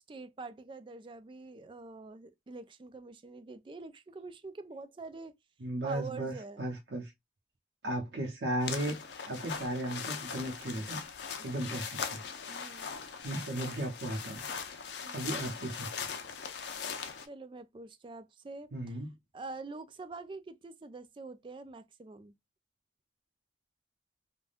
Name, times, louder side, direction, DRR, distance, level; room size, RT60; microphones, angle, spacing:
voice 1, 0.1-5.3 5.8-6.7 11.4-11.5 12.5-12.9 15.0-15.3 17.3-19.0 19.3-22.3, right 3 dB, 25° right, 0.3 m, -45 dB
voice 2, 5.6-7.1 7.8-8.9 9.3-11.0 11.4-12.2 13.2-14.4 15.1-16.1 18.7-19.1, right 1 dB, 80° right, 0.8 m, -35 dB
sound 1, 8.6-17.3, left 6 dB, 75° left, 0.5 m, -40 dB
3.4 x 2.2 x 2.4 m
head